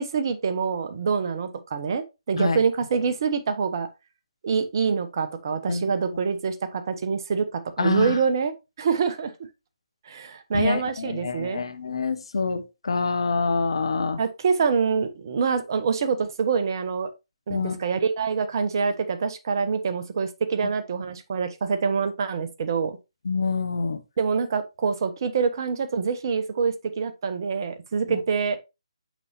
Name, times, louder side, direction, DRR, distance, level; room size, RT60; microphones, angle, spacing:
voice 1, 0.0-3.9 4.4-8.5 8.8-9.3 10.1-11.6 14.2-17.1 17.5-23.0 24.2-28.6, right 5 dB, 45° right, 0.9 m, -25 dB
voice 2, 7.8-8.2 10.5-14.2 17.5-17.8 23.2-24.0 28.1-28.2, left 4 dB, 60° left, 0.9 m, -26 dB
6.1 x 5.5 x 3.0 m
figure-of-eight pair, 145°, 3 cm